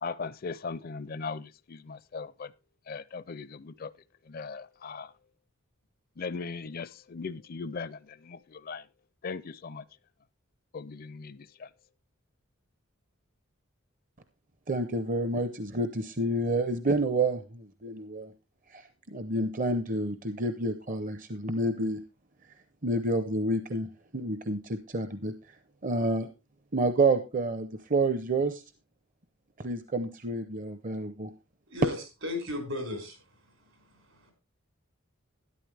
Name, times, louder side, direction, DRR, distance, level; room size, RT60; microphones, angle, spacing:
voice 1, 0.0-2.5 2.9-3.9 4.2-5.1 6.2-8.9 9.2-9.9 10.7-11.7, left 4 dB, 45° left, 0.4 m, -39 dB
voice 2, 14.7-18.3 18.7-22.0 22.8-23.9 24.1-25.3 25.8-26.3 26.7-28.6 29.6-31.3, right 2 dB, 40° right, 0.7 m, -29 dB
voice 3, 32.2-34.3, left 2 dB, 75° right, 5.1 m, -36 dB
12.5 x 10.5 x 3.3 m
head